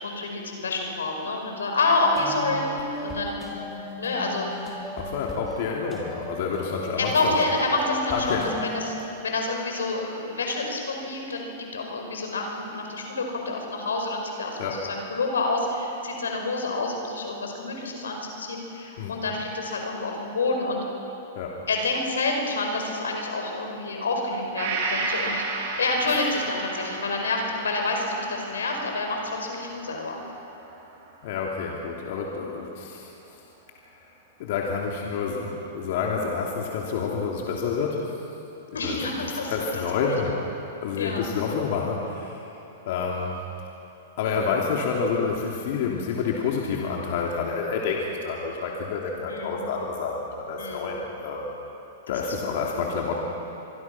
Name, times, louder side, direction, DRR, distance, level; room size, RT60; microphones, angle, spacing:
voice 1, 0.0-3.4 4.0-4.5 7.0-8.9 9.2-11.5 11.7-20.8 21.7-25.4 25.8-30.2 38.7-39.5 40.2-40.4 40.9-41.3 49.3-49.6 50.6-50.9 52.1-52.5, left 3 dB, 90° left, 2 dB, 5.1 m, -28 dB
sound 1, 2.0-9.1, left 1 dB, 15° left, 5.2 m, -37 dB
voice 2, 5.0-7.3 8.1-8.5 14.6-14.8 19.0-19.2 21.4-21.6 26.1-26.2 31.2-33.1 34.4-38.1 38.7-40.3 40.8-42.4 42.8-43.4 44.2-51.5 52.1-53.2, left 5 dB, 60° left, -1 dB, 3.0 m, -28 dB
Gong, 24.6-32.2 32.6-32.7, right 3 dB, 60° right, 4.9 m, -34 dB
25.5 x 23.0 x 6.1 m, 3.0 s
hypercardioid pair, 120°, 0 cm